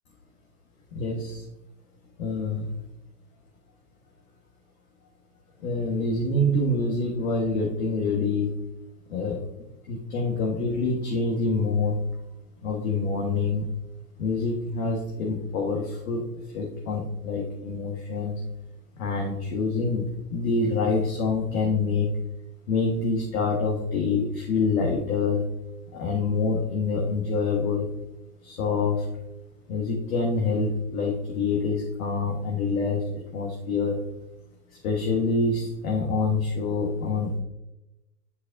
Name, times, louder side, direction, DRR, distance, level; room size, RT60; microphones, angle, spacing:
voice 1, 0.9-1.4 2.2-2.7 5.6-8.6 9.1-9.4 9.9-12.0 12.6-13.7 14.2-16.2 16.5-18.4 19.0-22.1 22.7-25.4 25.9-27.9 28.4-29.1 29.7-33.0 33.3-34.0 34.8-37.4, left 3 dB, 65° left, -1 dB, 1.5 m, -26 dB
9.9 x 4.0 x 2.7 m, 0.92 s
hypercardioid pair, 130°, 46 cm